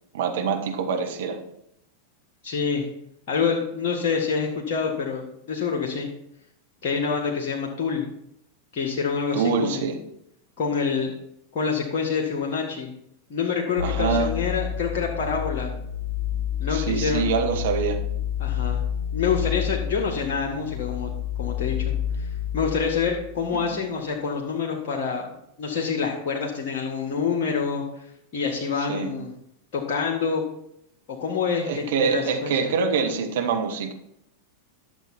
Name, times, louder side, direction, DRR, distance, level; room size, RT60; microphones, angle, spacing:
voice 1, 0.1-1.4 9.3-10.0 13.8-14.4 16.7-18.0 23.5-23.8 28.8-29.1 31.7-33.9, right 5 dB, 55° right, 4 dB, 1.4 m, -25 dB
voice 2, 2.4-2.8 3.3-6.1 6.8-8.0 8.7-9.8 10.6-11.1 11.5-12.9 13.3-15.7 16.6-17.3 18.4-18.8 19.1-21.1 21.4-22.3 22.5-25.3 25.6-27.8 28.3-29.3 29.7-30.4 31.1-32.7, left 5 dB, 45° left, -1 dB, 1.8 m, -26 dB
sound 1, 13.8-23.7, left 9 dB, 80° left, 0.8 m, -29 dB
11.5 x 7.1 x 4.4 m, 0.76 s
figure-of-eight pair, 90°, 0 cm